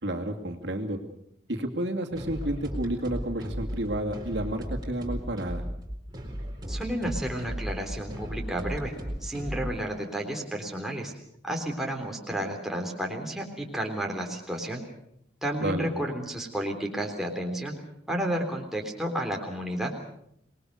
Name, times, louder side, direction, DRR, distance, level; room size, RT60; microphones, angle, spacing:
voice 1, 0.0-1.0 1.5-5.6 15.6-15.9, right 1 dB, 70° right, 3 dB, 2.6 m, -31 dB
sound 1, 2.1-9.8, equal, 20° right, 4.0 m, -36 dB
voice 2, 6.7-8.9 9.2-11.1 11.4-14.8 15.4-17.8 18.1-19.9, right 1 dB, ahead, 1 dB, 3.5 m, -31 dB
26.5 x 21.0 x 6.6 m, 0.74 s
head